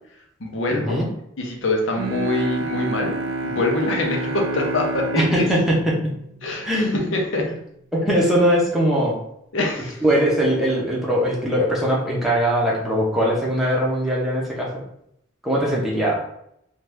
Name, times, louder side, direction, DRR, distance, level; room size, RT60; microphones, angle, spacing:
voice 1, 0.4-1.0 1.4-3.2 3.4-5.5 6.4-7.5 9.5-10.0, left 2 dB, 75° left, 1 dB, 0.7 m, -24 dB
Bowed string instrument, 1.9-7.1, right 3 dB, 90° right, 0.3 m, -29 dB
voice 2, 5.2-5.9 6.6-7.1 7.9-9.2 10.0-14.7 15.4-16.2, equal, ahead, -5 dB, 0.7 m, -20 dB
2.8 x 2.4 x 3.3 m, 0.75 s
head